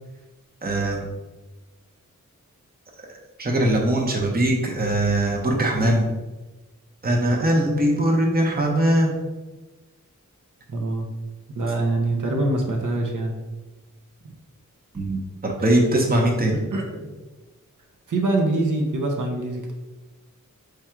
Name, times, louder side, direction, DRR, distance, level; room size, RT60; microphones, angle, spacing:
voice 1, 0.6-1.1 3.4-6.1 7.0-9.2 14.9-16.6, right 1 dB, 30° right, 0 dB, 0.8 m, -21 dB
voice 2, 10.7-11.1 11.6-13.3 14.2-14.3 16.7-17.2 18.1-19.7, right 2 dB, 70° right, 1 dB, 0.7 m, -24 dB
4.9 x 2.3 x 4.4 m, 1.1 s
wide cardioid pair, 85°, 32 cm